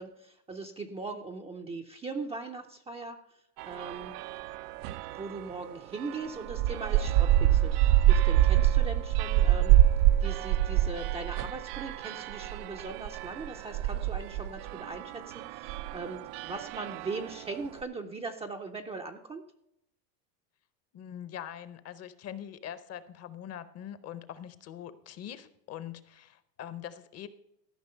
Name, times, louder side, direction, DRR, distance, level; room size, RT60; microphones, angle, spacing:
voice 1, 0.0-3.2 3.6-4.1 5.2-9.8 10.2-19.4, right 3 dB, 15° right, 3 dB, 0.4 m, -40 dB
sound 1, 3.6-5.5 5.9-17.5, right 13 dB, 75° right, 0.6 m, -26 dB
voice 2, 20.9-27.3, left 10 dB, 35° left, 14 dB, 0.7 m, -43 dB
13.5 x 5.7 x 5.5 m, 0.78 s
supercardioid pair, 135°, 47 cm